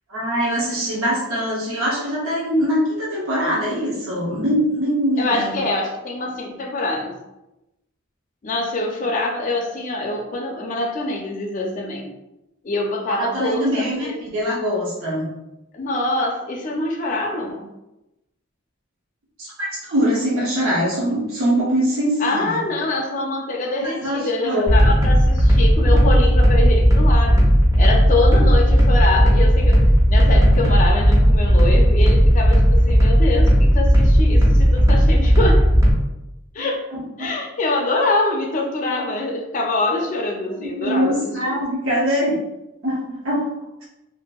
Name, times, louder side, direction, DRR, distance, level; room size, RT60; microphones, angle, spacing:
voice 1, 0.1-5.7 13.1-15.3 19.4-22.6 23.8-24.7 36.6-37.3 40.6-42.4 42.8-43.5, equal, 80° right, -5 dB, 0.7 m, -23 dB
voice 2, 5.2-7.1 8.4-12.1 12.6-14.2 15.7-17.7 22.2-27.4 27.8-29.8 30.1-35.7 36.5-36.8 37.2-41.5, left 2 dB, 40° left, 1 dB, 0.4 m, -24 dB
sound 1, 24.7-35.9, equal, 15° right, 0.5 m, -14 dB
2.6 x 2.5 x 2.2 m, 0.94 s
head